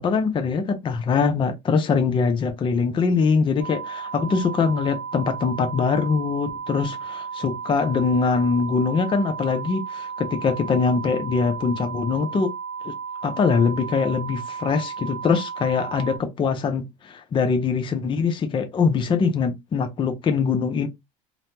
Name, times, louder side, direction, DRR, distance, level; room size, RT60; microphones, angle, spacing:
voice 1, 0.0-12.5 12.8-12.9 13.2-20.9, left 5 dB, 30° left, 0.6 m, -23 dB
sound 1, 3.6-16.2, right 6 dB, 80° right, 0.8 m, -34 dB
3.0 x 2.0 x 2.8 m
supercardioid pair, 95°, 16 cm